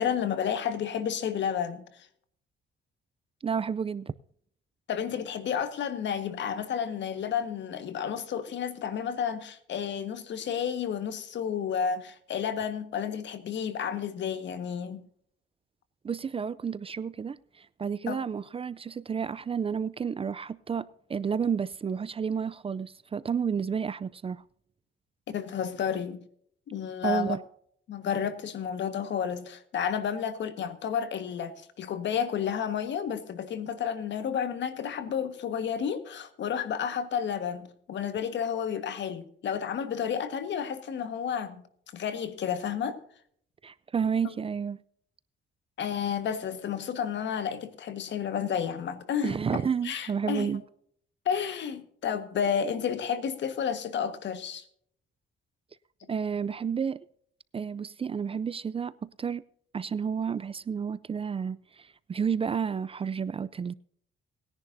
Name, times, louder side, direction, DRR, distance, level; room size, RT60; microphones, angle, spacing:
voice 1, 0.0-2.1 4.9-15.0 18.1-18.2 25.3-26.2 26.7-27.4 27.9-41.6 41.9-43.0 44.2-44.3 45.8-50.5 51.2-54.6, left 8 dB, 65° left, 1.5 m, -31 dB
voice 2, 3.4-4.1 16.0-24.4 27.0-27.4 43.6-44.8 49.2-50.6 56.1-57.0 57.5-59.4 59.7-63.7, right 6 dB, 30° right, 0.4 m, -31 dB
19.5 x 10.5 x 2.7 m
cardioid pair, 90°, 20 cm